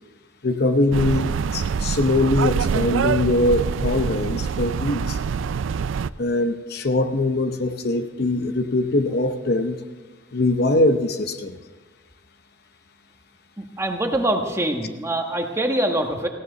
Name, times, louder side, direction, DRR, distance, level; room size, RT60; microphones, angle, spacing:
voice 1, 0.4-5.2 6.2-9.8 10.3-11.6, left 2 dB, 55° left, 8 dB, 0.8 m, -22 dB
sound 1, 0.9-6.1, right 6 dB, 80° right, 0.4 m, -25 dB
voice 2, 13.6-16.3, right 1 dB, 15° right, 3 dB, 1.4 m, -24 dB
19.0 x 16.5 x 4.0 m, 1.2 s
head